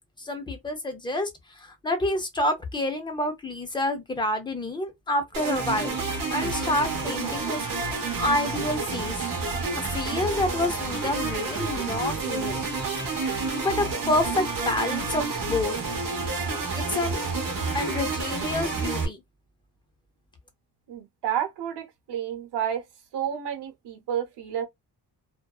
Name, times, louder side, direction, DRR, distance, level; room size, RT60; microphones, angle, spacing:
voice 1, 0.2-6.0 6.3-9.2 9.8-12.6 13.2-15.7 16.7-17.3 17.7-19.2, left 1 dB, 10° left, 0.5 m, -28 dB
sound 1, 5.3-19.1, right 4 dB, 55° right, 0.9 m, -29 dB
voice 2, 20.9-22.8 23.1-24.6, right 9 dB, 90° right, 0.8 m, -30 dB
2.7 x 2.1 x 2.3 m
wide cardioid pair, 180°, 39 cm